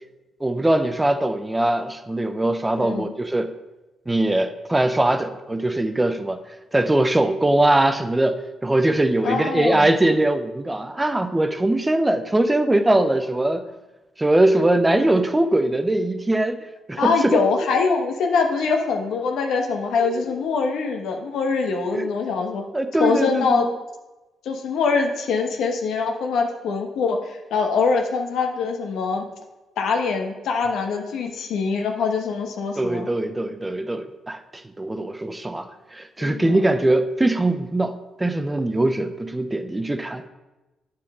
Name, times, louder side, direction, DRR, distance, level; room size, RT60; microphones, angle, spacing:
voice 1, 0.4-3.5 4.1-6.4 6.7-13.6 14.2-16.6 16.9-17.4 20.0-20.1 21.9-22.1 22.7-23.6 32.8-34.4 34.8-40.2, right 1 dB, 15° right, 9 dB, 0.6 m, -21 dB
voice 2, 2.8-3.1 9.2-9.9 17.0-22.6 23.0-23.7 24.4-29.2 29.8-33.1 36.2-36.6, left 4 dB, 80° left, 3 dB, 1.1 m, -23 dB
8.8 x 7.0 x 3.7 m, 1.1 s
cardioid pair, 105°, 0 cm